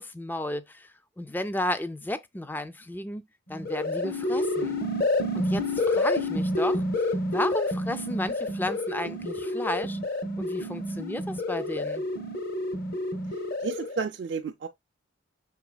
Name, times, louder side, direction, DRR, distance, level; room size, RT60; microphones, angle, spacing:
voice 1, 0.0-3.2 3.5-4.8 5.3-10.0 10.4-12.0, left 1 dB, 10° left, 0.4 m, -33 dB
sound 1, 3.5-14.0, left 1 dB, 50° left, 0.8 m, -29 dB
voice 2, 13.6-14.7, right 5 dB, 60° right, 0.4 m, -31 dB
5.9 x 3.9 x 2.2 m
head